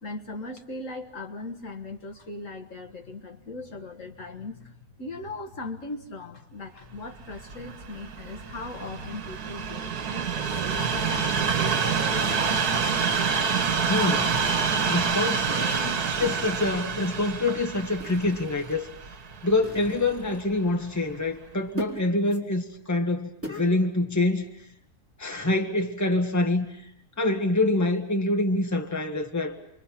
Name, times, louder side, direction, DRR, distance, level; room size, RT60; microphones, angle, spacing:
voice 1, 0.0-12.4, left 2 dB, 55° left, 2 dB, 1.9 m, -39 dB
Train, 7.2-20.4 21.1-21.2, right 6 dB, 90° right, 1.7 m, -27 dB
sound 1, 11.7-12.4 12.9-13.6 14.6-15.2 16.2-16.9 18.0-18.7 19.6-20.4 21.8-22.1 22.3-22.4 23.4-23.7, equal, 10° right, 3.7 m, -41 dB
voice 2, 13.9-14.3 14.9-18.9 19.4-24.4 25.2-26.7 27.2-29.5, left 2 dB, 10° left, 4 dB, 1.6 m, -26 dB
29.5 x 23.5 x 5.8 m, 0.76 s
omnidirectional pair, 1.6 m